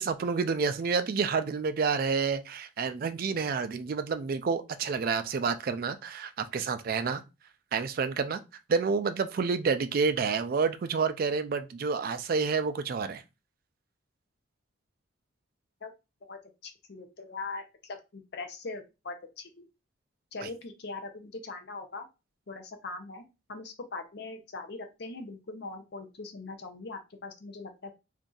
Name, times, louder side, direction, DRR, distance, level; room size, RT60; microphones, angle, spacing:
voice 1, 0.0-7.2 7.7-8.4 8.7-13.2 20.4-20.5, right 5 dB, 45° right, 0.3 m, -29 dB
voice 2, 16.2-19.7 20.3-22.1 22.5-23.2 23.5-27.9, left 3 dB, 50° left, 0.6 m, -41 dB
2.6 x 2.3 x 3.8 m
head